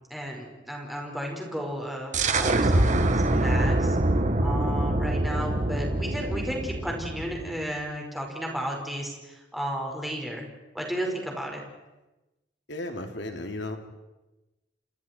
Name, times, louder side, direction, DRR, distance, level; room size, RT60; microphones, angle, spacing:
voice 1, 0.1-4.0 4.4-10.4 10.7-11.6, equal, ahead, -1 dB, 5.2 m, -33 dB
sound 1, 2.1-7.6, right 2 dB, 45° right, 1.5 m, -24 dB
voice 2, 12.7-13.8, left 1 dB, 85° left, 4 dB, 3.0 m, -34 dB
30.0 x 26.5 x 4.6 m, 1.1 s
head